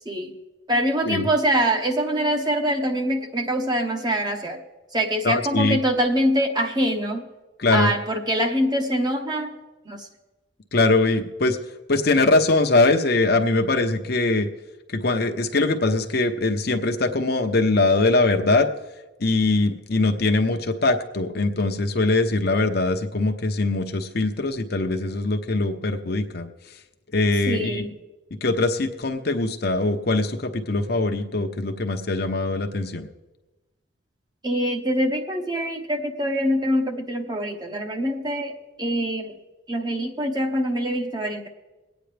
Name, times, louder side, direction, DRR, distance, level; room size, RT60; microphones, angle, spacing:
voice 1, 0.7-4.6 4.9-7.2 7.7-9.5 9.9-10.1 27.5-27.9 34.4-39.4 39.7-41.5, equal, 20° right, 3 dB, 1.0 m, -24 dB
voice 2, 5.2-5.8 7.6-7.9 10.7-11.6 11.9-14.5 14.9-18.7 19.2-26.5 27.1-27.8 28.4-33.1, left 2 dB, 50° left, 5 dB, 0.8 m, -22 dB
22.5 x 9.1 x 3.4 m, 1.1 s
head